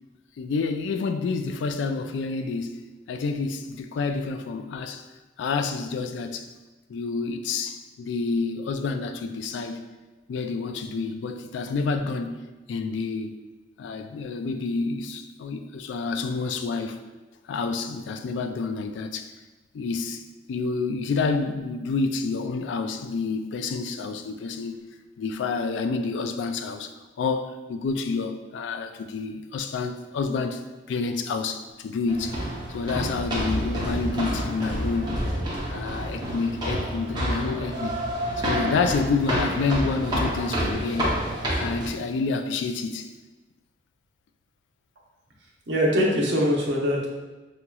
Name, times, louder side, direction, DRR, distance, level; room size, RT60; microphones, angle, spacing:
voice 1, 0.4-2.8 3.1-5.0 5.4-6.5 6.9-9.8 10.3-12.4 12.7-13.4 13.8-17.0 17.5-19.3 19.7-20.2 20.5-24.8 25.2-30.6 30.9-32.4 32.7-35.2 35.7-38.0 38.4-41.2 41.6-43.1, left 4 dB, 75° left, 0.3 m, -28 dB
sound 1, 32.1-41.9, equal, 25° right, 0.7 m, -28 dB
voice 2, 45.7-47.1, equal, 70° right, 0.8 m, -22 dB
4.9 x 2.9 x 2.3 m
head